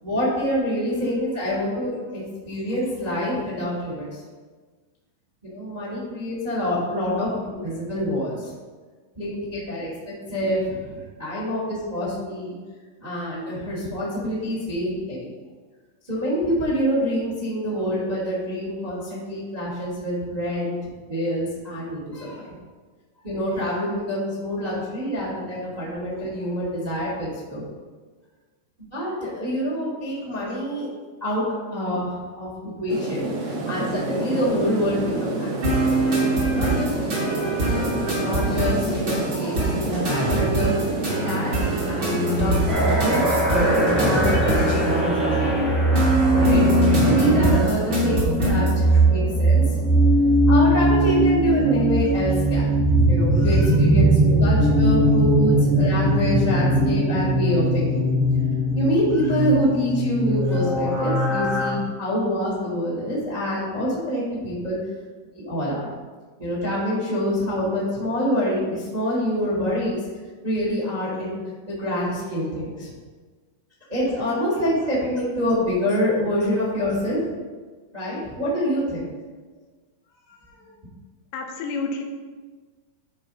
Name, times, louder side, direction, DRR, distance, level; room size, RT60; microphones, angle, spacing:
voice 1, 0.0-4.1 5.4-8.5 9.1-9.9 10.3-12.5 13.0-15.3 16.1-20.7 21.1-22.4 23.2-27.6 28.8-30.9 31.2-31.4 31.7-32.5 32.8-35.5 35.9-36.0 36.5-37.9 38.2-40.7 41.0-45.4 46.1-49.8 50.5-52.6 53.0-58.0 58.7-64.8 65.3-65.9 66.4-70.0 70.4-71.4 71.7-72.9 73.9-77.3 77.9-79.0 80.5-80.6, equal, 25° right, -6 dB, 0.8 m, -26 dB
sound 1, 32.9-43.3, right 3 dB, 70° right, 3.1 m, -29 dB
sound 2, 35.6-48.8, right 1 dB, 45° right, 1.4 m, -23 dB
sound 3, 42.7-61.7, right 1 dB, ahead, 0.5 m, -20 dB
voice 2, 81.3-82.0, left 3 dB, 80° left, 3 dB, 3.1 m, -29 dB
12.5 x 4.6 x 4.2 m, 1.4 s
omnidirectional pair, 5.4 m